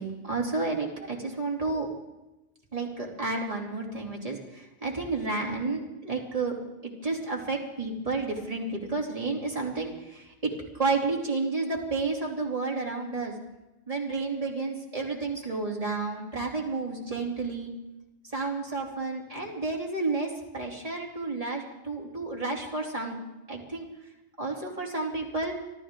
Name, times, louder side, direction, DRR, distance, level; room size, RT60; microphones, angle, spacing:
voice 1, 0.0-1.9 2.7-6.5 6.8-13.3 13.9-17.7 18.3-23.2 23.5-23.9 24.4-25.5, right 3 dB, 30° right, -1 dB, 3.1 m, -31 dB
25.5 x 13.5 x 3.8 m, 1.0 s
omnidirectional pair, 1.3 m